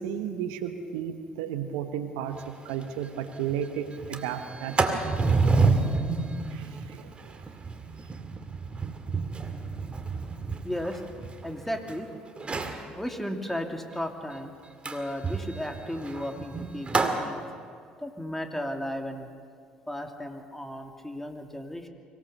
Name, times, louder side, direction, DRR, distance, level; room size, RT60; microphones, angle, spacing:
voice 1, 0.0-5.1 6.5-7.5, right 8 dB, 75° right, 8 dB, 1.2 m, -34 dB
Sliding door, 2.4-2.5 2.8-2.9 3.2-3.5 3.9-11.9 12.4-12.8 14.8-17.2, right 4 dB, 30° right, 2.2 m, -29 dB
voice 2, 10.6-11.0 11.4-12.1 13.0-14.5 14.8-17.4 18.0-19.3 19.9-21.9, equal, 5° left, 4 dB, 2.6 m, -34 dB
24.5 x 17.5 x 6.8 m, 2.1 s
hypercardioid pair, 55°, 4 cm